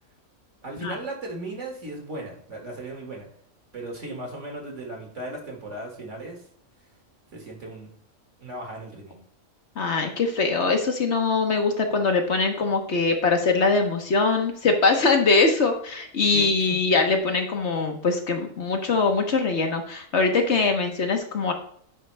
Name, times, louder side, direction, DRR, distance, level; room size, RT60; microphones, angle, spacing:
voice 1, 0.6-3.3 3.7-6.4 7.3-7.9 8.4-9.2 16.3-16.8, right 1 dB, 60° right, 1 dB, 2.3 m, -36 dB
voice 2, 9.8-21.5, left 3 dB, 55° left, 4 dB, 1.3 m, -22 dB
10.0 x 4.7 x 3.3 m, 0.63 s
omnidirectional pair, 1.4 m